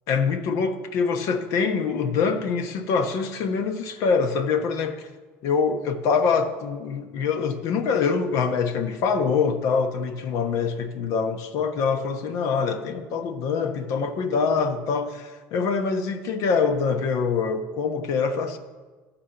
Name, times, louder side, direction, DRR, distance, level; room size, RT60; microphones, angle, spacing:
voice 1, 0.1-5.1 5.4-18.6, left 5 dB, 60° left, 8 dB, 1.0 m, -24 dB
13.0 x 4.4 x 7.7 m, 1.3 s
cardioid pair, 125°, 6 cm